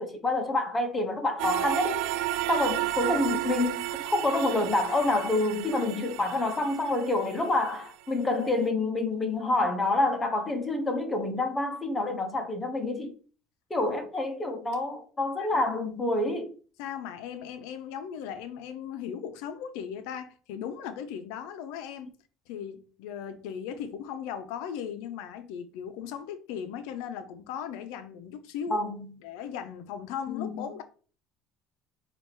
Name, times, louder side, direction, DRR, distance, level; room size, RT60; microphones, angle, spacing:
voice 1, 0.0-2.0 2.5-13.1 13.7-16.5 28.7-29.1 30.3-30.8, left 2 dB, 15° left, 0.8 m, -28 dB
sound 1, 1.4-7.6, right 15 dB, 85° right, 0.3 m, -32 dB
voice 2, 16.8-22.1 22.5-28.8 29.2-30.8, left 8 dB, 80° left, 0.6 m, -37 dB
4.5 x 2.5 x 4.5 m
cardioid pair, 140°, 0 cm